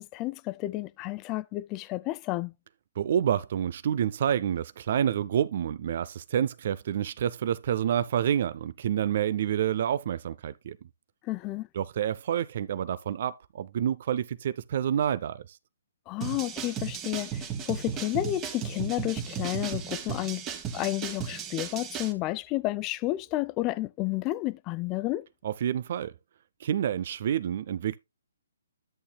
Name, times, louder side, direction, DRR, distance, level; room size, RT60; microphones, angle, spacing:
voice 1, 0.0-2.5 11.2-11.7 16.1-20.4 20.7-25.3, left 17 dB, 25° left, 0.4 m, -31 dB
voice 2, 3.0-10.8 11.8-15.6 25.4-26.1 26.6-28.0, right 9 dB, 50° right, 0.4 m, -28 dB
sound 1, 16.2-22.1, right 8 dB, 20° right, 1.4 m, -35 dB
10.5 x 8.5 x 2.2 m
hypercardioid pair, 140°, 0 cm